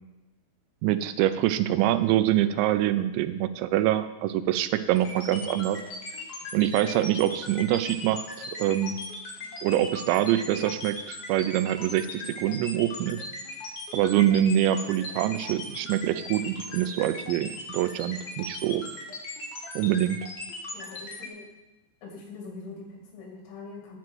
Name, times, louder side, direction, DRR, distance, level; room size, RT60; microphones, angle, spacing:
voice 1, 0.8-5.8 6.5-8.3 8.6-9.0 9.6-13.3 13.9-18.8 19.8-20.2, right 12 dB, 85° right, 11 dB, 2.7 m, -25 dB
sound 1, 5.0-21.3, left 2 dB, 60° left, 1.6 m, -38 dB
voice 2, 20.7-21.5 22.0-24.0, left 3 dB, 75° left, 0 dB, 4.1 m, -43 dB
10.5 x 4.6 x 7.7 m, 1.0 s
omnidirectional pair, 5.3 m